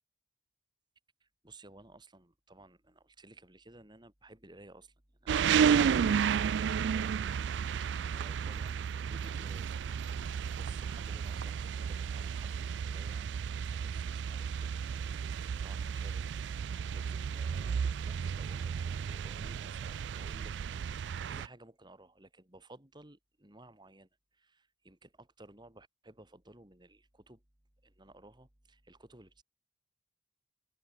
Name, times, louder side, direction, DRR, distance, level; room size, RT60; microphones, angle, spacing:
voice 1, 1.2-4.9 5.2-9.7 10.1-13.4 13.7-14.8 15.2-16.3 16.7-20.5 21.3-24.1 24.4-27.4 27.8-29.4, right 2 dB, 25° right, 3.0 m, -56 dB
sound 1, 5.3-21.5, right 7 dB, 65° right, 0.3 m, -32 dB
head